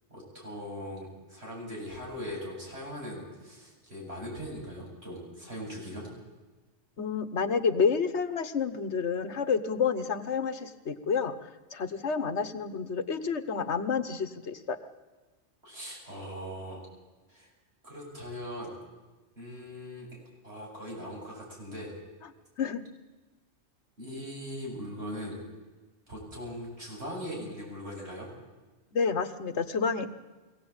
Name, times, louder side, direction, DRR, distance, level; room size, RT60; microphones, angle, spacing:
voice 1, 0.1-6.1 15.6-16.9 17.3-17.5 17.8-18.8 19.4-20.1 20.4-21.9 24.0-25.4 26.1-28.3, equal, 65° right, -3 dB, 8.3 m, -40 dB
voice 2, 7.0-14.8 22.6-22.8 28.9-30.1, left 5 dB, 80° left, 11 dB, 1.5 m, -29 dB
23.5 x 17.5 x 8.8 m, 1.2 s
omnidirectional pair, 1.2 m